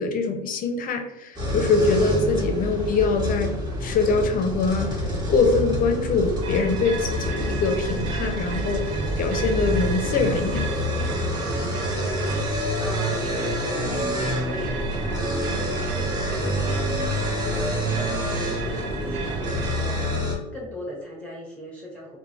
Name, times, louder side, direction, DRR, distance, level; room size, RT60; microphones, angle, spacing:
voice 1, 0.0-3.5 3.8-10.7, left 4 dB, 40° left, 4 dB, 0.5 m, -23 dB
sound 1, 1.4-20.4, equal, 20° right, 1.0 m, -27 dB
sound 2, 6.4-20.2, right 5 dB, 80° right, 0.4 m, -35 dB
voice 2, 12.0-22.2, equal, 5° left, -4 dB, 0.7 m, -40 dB
3.1 x 2.2 x 2.4 m, 0.97 s
supercardioid pair, 100°, 21 cm